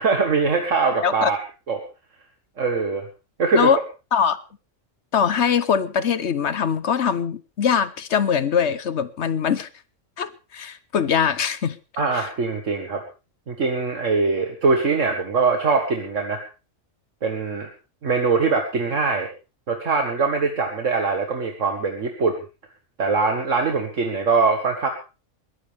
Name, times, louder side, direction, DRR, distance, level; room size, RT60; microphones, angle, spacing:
voice 1, 0.0-1.4 1.7-1.8 2.6-3.0 3.4-3.7 12.0-13.0 13.5-16.4 17.2-17.7 18.0-19.3 19.7-22.4 23.0-24.9, right 4 dB, 70° right, 2.0 m, -22 dB
voice 2, 1.0-1.3 3.5-3.8 4.1-4.4 5.1-9.7 10.2-11.8 12.1-12.2, left 7 dB, 60° left, 1.2 m, -22 dB
21.0 x 15.5 x 3.5 m
omnidirectional pair, 1.3 m